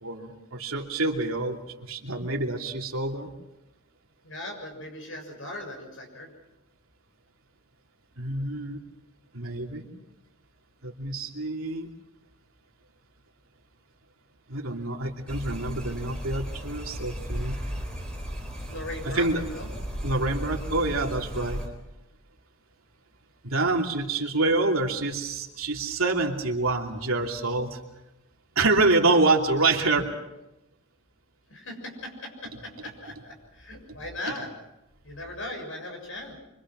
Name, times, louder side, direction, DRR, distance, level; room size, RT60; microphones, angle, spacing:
voice 1, 0.0-3.3 8.2-8.8 9.3-9.9 10.8-11.9 14.5-17.6 19.0-19.4 20.0-21.6 23.4-27.8 28.5-30.1, right 2 dB, 80° right, 1 dB, 3.0 m, -26 dB
voice 2, 4.2-6.3 18.7-19.7 31.5-34.5 35.0-36.4, left 1 dB, 65° left, 3 dB, 7.0 m, -38 dB
sound 1, 15.3-21.7, equal, 5° left, 4.4 m, -35 dB
26.0 x 25.0 x 6.3 m, 0.93 s
head